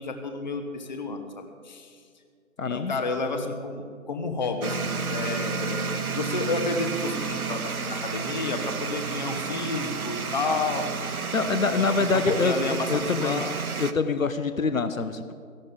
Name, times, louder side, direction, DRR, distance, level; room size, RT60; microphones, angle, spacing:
voice 1, 0.0-2.0 2.6-10.9 11.7-13.5, left 3 dB, 30° left, 6 dB, 1.1 m, -31 dB
voice 2, 2.6-2.9 11.3-13.5 13.8-15.4, left 4 dB, 70° left, 10 dB, 1.1 m, -25 dB
sound 1, 4.6-13.9, right 5 dB, 90° right, 1.0 m, -31 dB
17.0 x 14.5 x 3.7 m, 2.2 s
figure-of-eight pair, 160°, 42 cm